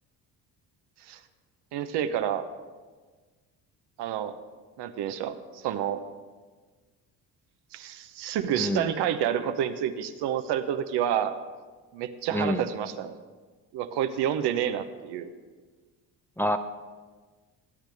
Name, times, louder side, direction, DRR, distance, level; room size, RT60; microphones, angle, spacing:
voice 1, 1.7-2.5 4.0-4.3 4.8-6.0 7.7-11.4 11.9-13.2 13.7-15.3, right 9 dB, 65° right, 9 dB, 0.9 m, -29 dB
voice 2, 8.6-8.9 12.3-12.6 16.4-16.6, left 1 dB, 5° left, 7 dB, 0.6 m, -27 dB
18.5 x 9.0 x 3.5 m, 1.4 s
hypercardioid pair, 60°, 43 cm